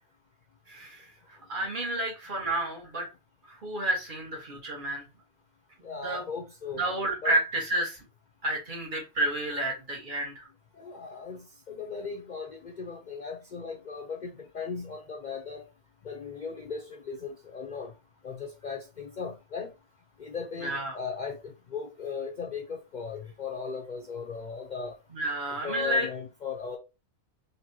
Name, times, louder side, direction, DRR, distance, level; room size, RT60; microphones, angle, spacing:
voice 1, 0.7-3.1 3.4-5.1 5.9-6.2 6.8-8.0 8.4-10.5 20.6-20.9 25.1-26.1, right 1 dB, 45° right, 1.7 m, -30 dB
voice 2, 5.8-6.8 7.2-7.3 10.8-11.4 11.7-15.6 16.0-17.9 18.2-19.7 20.2-25.0 25.6-26.8, left 5 dB, 45° left, 0.7 m, -37 dB
4.2 x 3.4 x 2.9 m
omnidirectional pair, 1.2 m